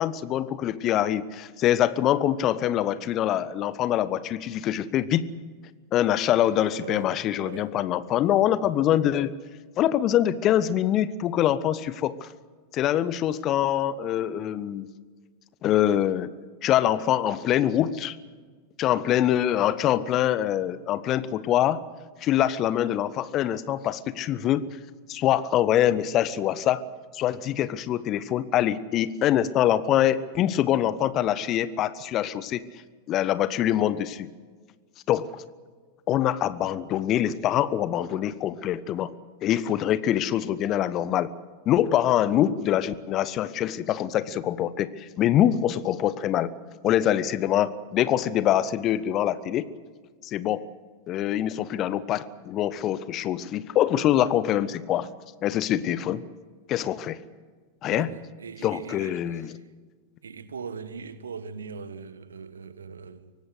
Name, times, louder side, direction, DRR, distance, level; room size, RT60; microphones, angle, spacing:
voice 1, 0.0-5.2 5.9-9.3 9.8-12.3 12.7-14.9 15.6-16.3 16.6-18.2 18.8-21.8 22.2-24.7 25.1-26.8 27.1-32.7 33.1-34.3 35.1-35.4 36.1-39.1 39.4-41.3 41.7-46.5 46.8-49.7 50.2-50.6 51.1-55.1 55.4-56.2 56.7-57.2 57.8-58.1 58.6-59.5, left 11 dB, 35° left, 1.0 m, -24 dB
voice 2, 7.4-7.7 57.9-59.6 60.2-63.3, right 5 dB, 70° right, 1.4 m, -40 dB
24.0 x 18.5 x 8.0 m
figure-of-eight pair, 90°, 0 cm